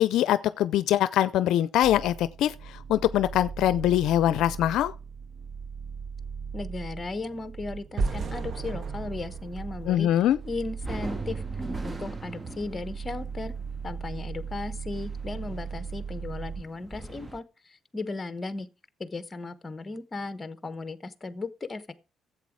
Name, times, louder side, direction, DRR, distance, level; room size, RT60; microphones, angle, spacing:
voice 1, 0.0-4.9 9.9-10.4, left 12 dB, 85° left, 0.5 m, -23 dB
sound 1, 1.8-16.6, right 6 dB, 70° right, 0.6 m, -39 dB
voice 2, 6.5-10.1 10.4-11.4 11.8-13.5 13.8-18.7 19.0-21.9, left 3 dB, 25° left, 1.0 m, -36 dB
sound 2, 8.0-11.0, right 4 dB, 55° right, 1.1 m, -34 dB
sound 3, 10.4-17.4, right 2 dB, 20° right, 1.0 m, -41 dB
11.5 x 8.0 x 4.6 m
cardioid pair, 90°, 0 cm